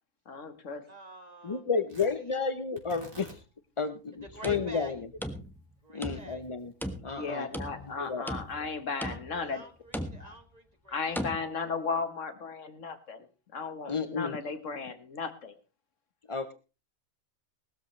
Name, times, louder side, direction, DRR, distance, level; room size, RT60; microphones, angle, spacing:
voice 1, 0.3-0.8 7.2-9.6 10.2-10.3 10.9-13.3 13.5-15.5, left 4 dB, 60° left, 10 dB, 1.6 m, -35 dB
voice 2, 0.9-1.7 2.2-2.4 4.2-5.0 5.8-6.5 9.0-11.7 14.3-14.4, right 1 dB, 30° right, 7 dB, 1.6 m, -48 dB
voice 3, 1.4-3.4 3.8-5.0 5.9-6.7 7.0-7.5 7.8-8.3 13.9-14.4 16.3-16.5, left 5 dB, 40° left, 10 dB, 0.4 m, -31 dB
Tearing, 1.9-10.2, right 2 dB, 65° right, 3.8 m, -57 dB
sound 1, 4.3-5.7 6.0-6.5 6.8-7.9 8.3-8.7 9.0-9.5 9.9-10.4 11.1-11.4, equal, ahead, 1.1 m, -37 dB
18.5 x 13.5 x 3.2 m, 0.32 s
omnidirectional pair, 1.5 m